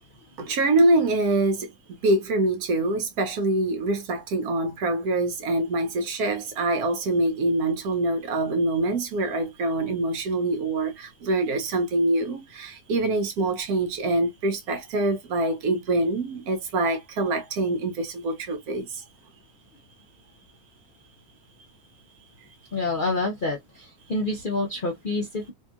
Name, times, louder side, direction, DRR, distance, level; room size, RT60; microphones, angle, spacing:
voice 1, 0.4-1.7 2.0-18.9, right 2 dB, 65° right, 1.1 m, -25 dB
voice 2, 22.7-25.5, left 2 dB, 55° left, 0.5 m, -28 dB
2.9 x 2.7 x 2.3 m
omnidirectional pair, 1.8 m